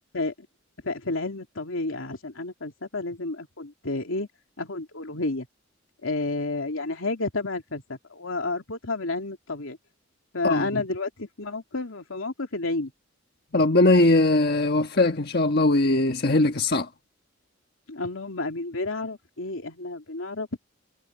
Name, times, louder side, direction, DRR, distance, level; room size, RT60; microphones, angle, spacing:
voice 1, 0.8-4.3 4.6-5.5 6.0-9.8 10.3-12.9 17.9-20.6, left 2 dB, 85° left, 2.8 m, -31 dB
voice 2, 10.4-10.8 13.5-16.9, left 2 dB, 50° left, 1.3 m, -20 dB
head